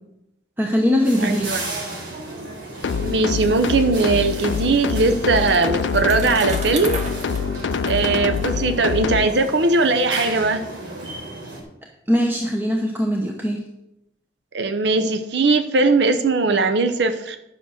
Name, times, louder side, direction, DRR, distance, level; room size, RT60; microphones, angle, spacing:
voice 1, 0.6-1.5 12.1-13.6, equal, 10° right, 1 dB, 0.8 m, -21 dB
sound 1, 1.0-11.6, right 2 dB, 90° right, 3.6 m, -34 dB
voice 2, 1.2-1.6 2.9-7.0 7.9-10.7 14.5-17.4, right 3 dB, 65° right, 8 dB, 0.7 m, -19 dB
sound 2, 2.8-9.3, left 6 dB, 75° left, 0.4 m, -25 dB
Bicycle, 4.3-9.4, right 2 dB, 40° right, 1.5 m, -36 dB
10.5 x 6.1 x 6.4 m, 0.89 s
head